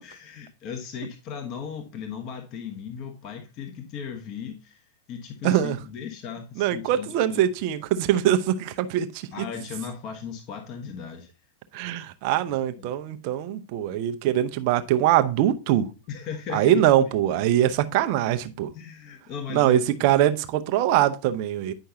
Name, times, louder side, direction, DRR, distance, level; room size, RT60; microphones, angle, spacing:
voice 1, 0.0-4.8 5.1-7.4 9.3-11.3 11.9-12.0 12.5-12.9 16.1-17.1 18.7-20.0, left 7 dB, 40° left, 1.2 m, -37 dB
voice 2, 5.4-5.8 6.6-9.1 11.7-15.9 16.5-18.7 19.5-21.7, right 12 dB, 45° right, 0.7 m, -22 dB
9.7 x 5.6 x 2.7 m
figure-of-eight pair, 90°, 0 cm